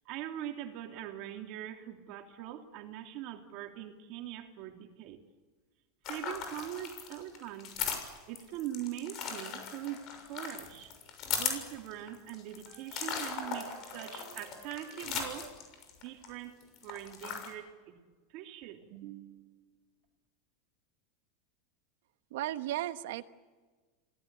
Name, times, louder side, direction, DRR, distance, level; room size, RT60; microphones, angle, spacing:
voice 1, 0.0-5.2 6.1-7.7 8.3-10.9 11.4-15.5 16.0-16.6 16.8-17.9 18.3-19.7, right 12 dB, 55° right, 4 dB, 3.2 m, -42 dB
sound 1, 6.0-16.3 16.6-17.5, left 7 dB, 45° left, 6.6 m, -38 dB
voice 2, 22.3-23.2, right 14 dB, 75° right, 11 dB, 1.2 m, -35 dB
28.0 x 18.0 x 8.6 m, 1.3 s
supercardioid pair, 120°, 0 cm